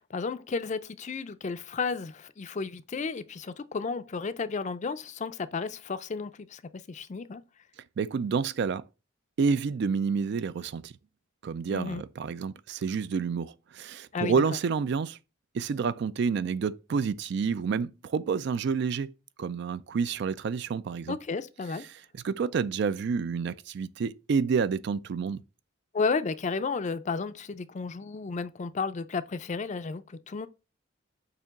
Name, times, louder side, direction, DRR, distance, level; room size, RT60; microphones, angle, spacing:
voice 1, 0.0-7.4 11.7-12.0 14.1-14.3 21.1-21.9 25.9-30.5, left 4 dB, 35° left, 0.4 m, -33 dB
voice 2, 8.0-8.8 9.4-10.9 11.4-15.2 15.5-19.1 19.4-21.2 22.2-25.4, right 5 dB, 60° right, 0.3 m, -29 dB
6.8 x 2.9 x 5.8 m
head